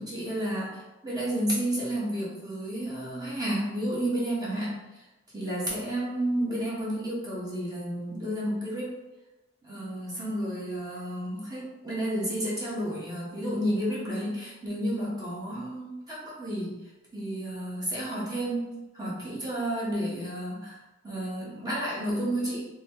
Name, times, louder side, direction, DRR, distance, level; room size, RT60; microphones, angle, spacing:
voice 1, 0.0-5.0 5.3-9.0 9.6-16.8 17.1-22.7, right 1 dB, 20° right, -7 dB, 1.4 m, -31 dB
4.2 x 3.4 x 3.1 m, 1.0 s
head